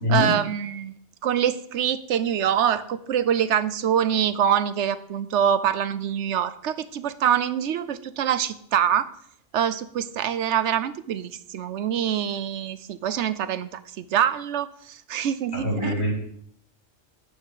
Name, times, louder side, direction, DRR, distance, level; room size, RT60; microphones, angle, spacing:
voice 1, 0.1-0.9 1.2-9.1 9.5-16.1, right 9 dB, 65° right, 14 dB, 0.9 m, -25 dB
voice 2, 15.5-16.1, left 2 dB, 50° left, -2 dB, 3.8 m, -23 dB
9.7 x 8.5 x 4.8 m, 0.64 s
omnidirectional pair, 1.3 m